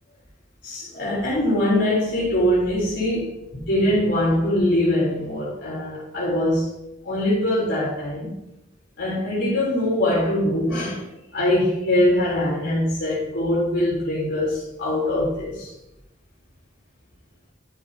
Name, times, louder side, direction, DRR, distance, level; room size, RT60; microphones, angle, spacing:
voice 1, 0.6-6.7 7.0-8.3 9.0-11.1 11.3-15.7, left 1 dB, 65° left, 4.0 m, -22 dB
12.5 x 7.9 x 2.9 m
head